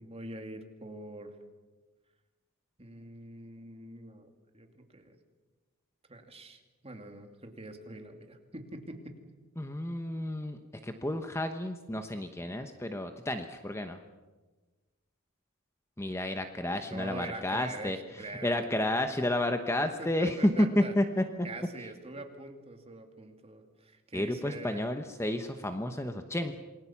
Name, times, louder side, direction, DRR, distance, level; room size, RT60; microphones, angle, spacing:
voice 1, 0.0-1.3 2.8-4.3 4.5-5.2 6.1-9.2 16.9-18.8 19.8-20.9 21.4-24.9, right 2 dB, 30° right, 5 dB, 2.6 m, -44 dB
voice 2, 9.6-14.0 16.0-18.0 18.4-21.2 24.1-26.5, left 1 dB, 10° left, 7 dB, 1.0 m, -31 dB
28.0 x 21.0 x 7.3 m, 1.2 s
head